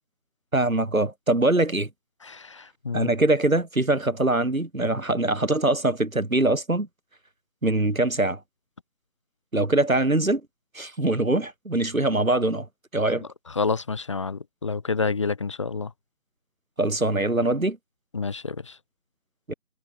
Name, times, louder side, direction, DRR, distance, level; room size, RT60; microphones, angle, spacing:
voice 1, 0.5-1.9 2.9-6.9 7.6-8.4 9.5-10.4 10.7-12.7 12.9-13.3 16.8-17.8 19.5-19.6, right 2 dB, 60° right, 5.9 m, -23 dB
voice 2, 2.2-3.1 13.5-15.9 18.1-18.7, left 4 dB, 20° left, 3.4 m, -28 dB
figure-of-eight pair, 165°, 45 cm